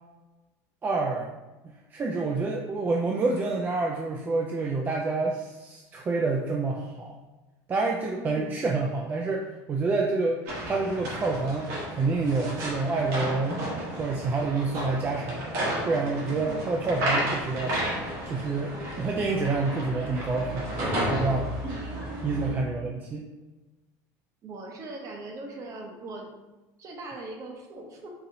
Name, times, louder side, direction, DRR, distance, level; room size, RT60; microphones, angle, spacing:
voice 1, 0.8-1.3 1.9-7.2 7.7-13.6 14.0-15.5 15.9-17.8 18.3-20.8 21.1-21.5 22.2-23.2, right 3 dB, 25° right, 0 dB, 0.3 m, -28 dB
voice 2, 8.1-8.6 16.4-16.7 21.6-21.9 22.3-22.6 24.4-26.3 26.8-28.1, right 2 dB, 40° right, 1 dB, 0.7 m, -40 dB
sound 1, 10.5-22.5, equal, 80° right, 1.3 m, -32 dB
4.0 x 2.7 x 2.6 m, 1.1 s
cardioid pair, 130°, 8 cm